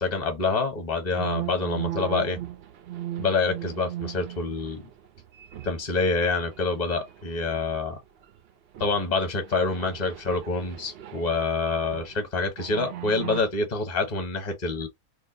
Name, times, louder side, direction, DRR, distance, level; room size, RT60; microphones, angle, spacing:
voice 1, 0.0-2.4 3.2-4.8 5.6-8.0 8.8-14.9, left 3 dB, 35° left, 1.0 m, -27 dB
sound 1, 1.2-6.0 6.3-7.9 8.2-8.4 8.7-12.2 12.6-13.4, right 12 dB, 65° right, 0.6 m, -38 dB
2.8 x 2.3 x 3.7 m
omnidirectional pair, 1.6 m